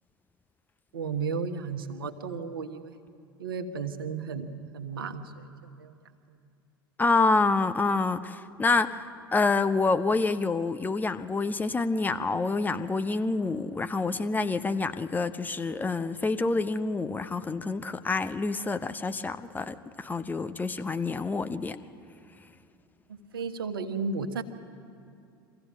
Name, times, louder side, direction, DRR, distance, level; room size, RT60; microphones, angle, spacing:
voice 1, 0.9-3.0 3.4-4.5 4.7-6.0 23.1-24.4, right 5 dB, 75° right, 8 dB, 1.2 m, -34 dB
voice 2, 7.0-9.0 9.3-21.8, left 3 dB, 15° left, 9 dB, 0.8 m, -27 dB
24.5 x 15.0 x 7.4 m, 2.5 s
figure-of-eight pair, 75°, 12 cm